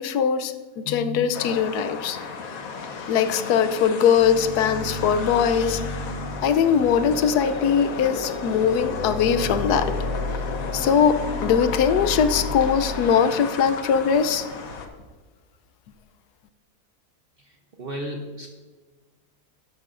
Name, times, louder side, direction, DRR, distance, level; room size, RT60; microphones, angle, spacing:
voice 1, 0.0-2.2 3.1-6.1 6.4-9.9 10.7-14.4, left 7 dB, 85° left, 11 dB, 1.2 m, -21 dB
sound 1, 1.3-14.9, left 4 dB, 65° left, 1.3 m, -34 dB
sound 2, 4.2-13.1, left 2 dB, 20° right, 2.0 m, -33 dB
voice 2, 17.8-18.5, equal, 45° right, 2 dB, 0.9 m, -33 dB
12.0 x 10.5 x 2.5 m, 1.3 s
omnidirectional pair, 1.6 m